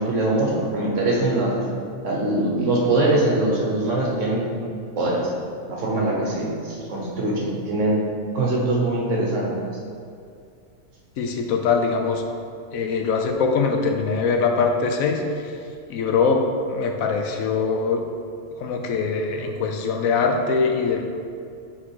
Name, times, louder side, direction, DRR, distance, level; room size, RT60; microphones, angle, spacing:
voice 1, 0.0-1.5 2.0-4.5 5.0-5.3 5.7-8.0 8.3-9.5, right 2 dB, 65° right, -2 dB, 1.3 m, -22 dB
voice 2, 11.2-12.2 12.7-15.2 15.9-18.0 18.6-21.0, left 5 dB, 85° left, 4 dB, 1.1 m, -22 dB
5.8 x 4.1 x 4.6 m, 2.4 s
omnidirectional pair, 1.4 m